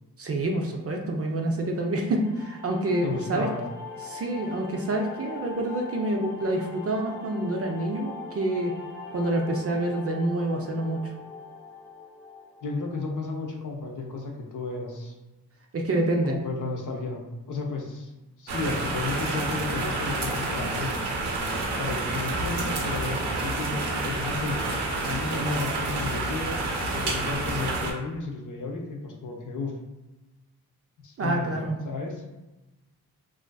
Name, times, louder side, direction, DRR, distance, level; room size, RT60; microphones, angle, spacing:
voice 1, 0.2-3.5 4.0-8.7 9.1-11.1 15.7-16.4 31.2-31.8, right 1 dB, 35° right, 1 dB, 0.4 m, -27 dB
sound 1, 2.1-13.2, left 3 dB, 5° left, 0.6 m, -41 dB
voice 2, 3.0-3.7 12.6-15.2 16.2-18.1 18.4-21.0 21.8-24.6 25.1-29.7 31.0-31.5 31.8-32.2, left 3 dB, 50° left, 0 dB, 0.6 m, -33 dB
sound 2, 18.5-27.9, right 2 dB, 80° right, 0.6 m, -29 dB
2.4 x 2.4 x 2.2 m, 1.1 s
supercardioid pair, 45°, 40 cm